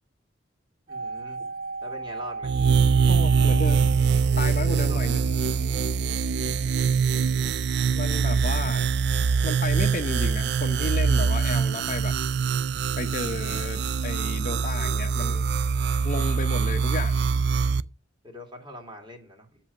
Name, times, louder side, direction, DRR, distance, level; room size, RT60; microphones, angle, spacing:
voice 1, 0.9-1.5 1.8-2.5 4.8-5.0 6.6-7.2 8.5-8.7 18.2-19.6, equal, 25° right, 2.5 m, -43 dB
sound 1, 0.9-5.0 5.2-5.3, right 3 dB, 45° right, 4.6 m, -35 dB
sound 2, 2.4-17.8, right 5 dB, 60° right, 0.4 m, -23 dB
voice 2, 3.1-3.9 4.4-5.2 7.9-8.9 9.4-12.1 13.0-15.5 16.0-17.2, left 3 dB, 45° left, 0.8 m, -33 dB
7.6 x 5.6 x 6.7 m
head